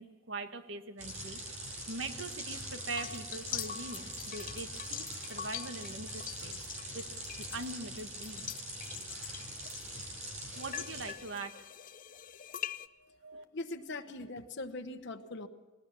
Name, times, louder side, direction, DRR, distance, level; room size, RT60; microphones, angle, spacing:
voice 1, 0.0-1.4 1.9-6.6 6.9-7.1 7.4-8.4 10.5-11.7 13.2-13.4, right 3 dB, 70° right, 8 dB, 1.5 m, -42 dB
sound 1, 1.0-11.1, right 1 dB, 40° right, 6.6 m, -43 dB
sound 2, 2.9-10.0 10.5-12.9, left 10 dB, 45° left, 0.6 m, -44 dB
voice 2, 13.0-15.5, left 2 dB, 65° left, 5 dB, 1.2 m, -42 dB
19.5 x 19.0 x 7.2 m, 1.2 s
head